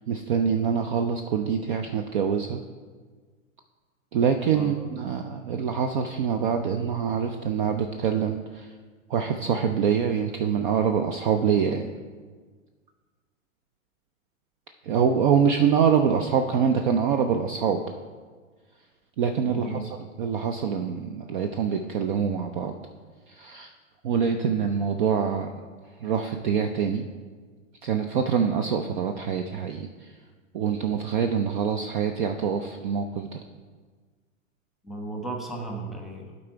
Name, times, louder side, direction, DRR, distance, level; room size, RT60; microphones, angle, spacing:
voice 1, 0.1-2.6 4.1-8.7 9.1-11.9 14.8-17.8 19.2-19.9 20.2-22.7 23.3-23.7 24.0-25.5 26.0-27.0 27.8-30.1 30.5-33.4, right 7 dB, 40° right, 6 dB, 0.5 m, -25 dB
voice 2, 19.4-19.8 34.8-36.3, right 2 dB, ahead, 0 dB, 1.0 m, -34 dB
11.5 x 4.0 x 4.6 m, 1.5 s
figure-of-eight pair, 105°, 40 cm